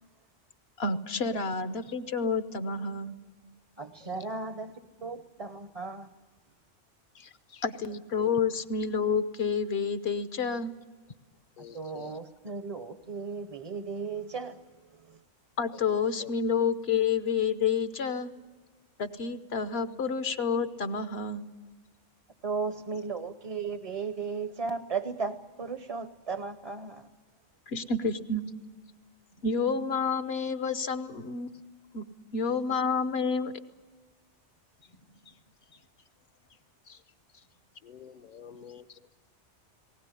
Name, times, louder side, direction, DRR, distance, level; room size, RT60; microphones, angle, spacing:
voice 1, 0.8-3.1 7.6-10.7 15.6-18.3 19.0-21.4 27.7-28.4 29.4-31.5 31.9-32.0 32.3-33.5, left 5 dB, 60° left, 1.2 m, -29 dB
voice 2, 3.8-6.1 11.7-14.6 14.9-15.2 22.4-27.1, right 5 dB, 35° right, 0.7 m, -36 dB
voice 3, 7.1-7.6 7.9-8.4 11.6-12.2 15.7-15.8 16.2-16.3 29.3-29.4 32.4-32.6 34.8-35.4 35.7-35.8 36.9-37.0 37.3-37.4 37.8-39.0, left 7 dB, 45° left, 0.8 m, -49 dB
19.5 x 18.0 x 9.8 m
omnidirectional pair, 1.2 m